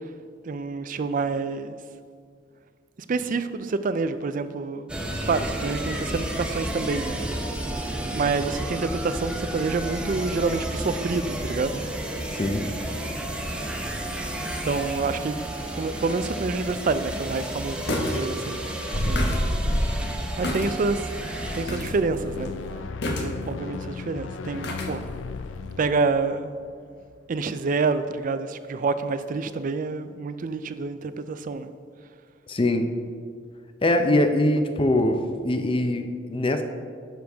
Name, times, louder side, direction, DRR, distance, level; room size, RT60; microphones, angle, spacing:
voice 1, 0.5-1.8 3.1-4.9 5.2-7.2 8.1-11.8 14.6-15.4 15.7-19.3 20.4-21.1 21.6-22.5 23.0-25.1 25.8-26.5 27.3-31.7, right 4 dB, 45° right, 12 dB, 0.4 m, -27 dB
sound 1, 4.9-21.6, right 1 dB, 5° right, 0.8 m, -32 dB
voice 2, 12.3-12.7 32.5-32.9 33.8-36.6, left 1 dB, 30° left, 7 dB, 0.6 m, -23 dB
sound 2, 16.7-16.8 17.9-18.2 18.5-18.6 18.9-20.7 21.1-21.2 21.7-21.9 22.2-22.5 23.0-23.6 24.6-24.9 25.3-25.4, left 1 dB, 60° left, 1.1 m, -26 dB
sound 3, 21.2-27.5, left 4 dB, 85° left, 0.4 m, -37 dB
10.0 x 6.5 x 3.5 m, 2.1 s
head